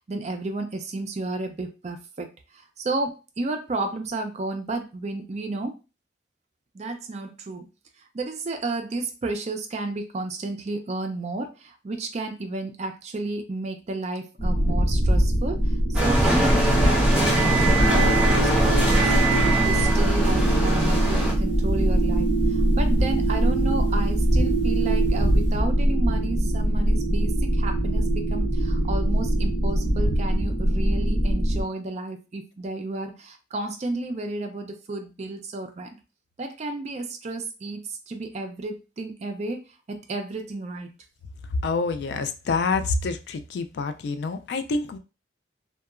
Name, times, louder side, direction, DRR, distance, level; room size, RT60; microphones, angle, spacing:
voice 1, 0.1-5.7 6.7-7.7 8.1-19.1 19.5-36.0 36.4-39.6 39.9-40.9, right 2 dB, 40° right, 0.4 m, -32 dB
sound 1, 14.4-31.6, right 1 dB, 50° left, 1.1 m, -22 dB
sound 2, 15.9-21.3, right 2 dB, 5° right, 0.7 m, -23 dB
sound 3, 17.8-24.3 24.8-25.2, left 4 dB, 90° left, 0.7 m, -35 dB
voice 2, 41.6-45.0, left 4 dB, 65° left, 0.3 m, -27 dB
2.7 x 2.2 x 2.4 m
head